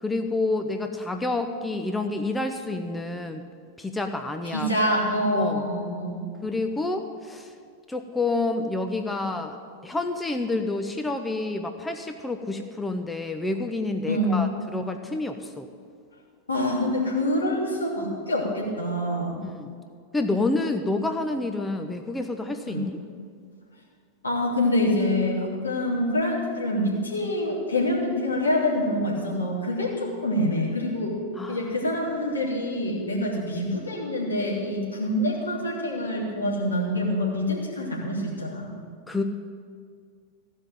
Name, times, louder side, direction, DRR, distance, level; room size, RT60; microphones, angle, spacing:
voice 1, 0.0-3.4 3.8-4.9 5.3-5.7 6.4-7.5 7.9-9.6 9.8-15.7 19.4-19.7 20.1-23.0 31.4-31.8 39.1-39.2, left 2 dB, 10° left, 5 dB, 0.7 m, -29 dB
voice 2, 4.5-6.2 14.1-14.5 16.5-19.4 22.7-22.8 24.2-31.2 31.5-38.7, left 1 dB, 80° left, -3 dB, 2.8 m, -26 dB
15.0 x 5.4 x 9.0 m, 2.2 s
figure-of-eight pair, 90°, 0 cm